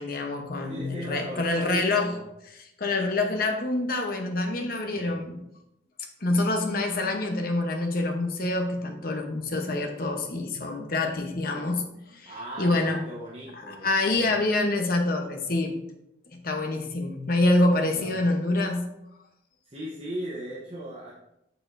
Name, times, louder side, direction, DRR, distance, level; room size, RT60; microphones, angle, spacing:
voice 1, 0.0-2.2 2.5-5.4 6.2-13.0 13.6-15.8 16.3-18.9, left 2 dB, 45° left, 3 dB, 0.9 m, -26 dB
voice 2, 0.6-2.2 4.8-5.2 12.2-14.4 17.9-18.2 19.7-21.1, right 1 dB, 30° right, -5 dB, 0.9 m, -38 dB
6.8 x 6.7 x 2.6 m, 0.82 s
head